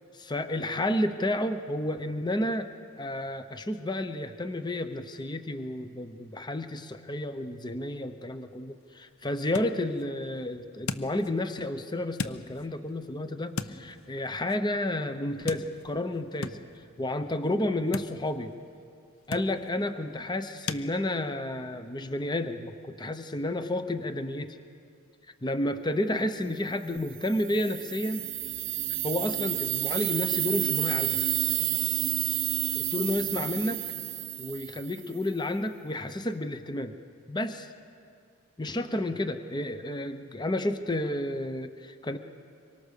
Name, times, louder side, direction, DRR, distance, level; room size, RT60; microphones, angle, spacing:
voice 1, 0.3-2.7 3.0-16.6 17.0-18.5 19.3-24.6 25.4-28.2 29.0-31.2 32.7-33.8 34.4-36.9 37.3-37.7 38.6-42.2, left 1 dB, 20° left, 9 dB, 0.8 m, -31 dB
sound 1, 8.3-20.9, left 4 dB, 65° left, 0.9 m, -42 dB
sound 2, 27.2-35.1, right 13 dB, 60° right, 1.1 m, -30 dB
25.5 x 23.5 x 6.7 m, 2.4 s
head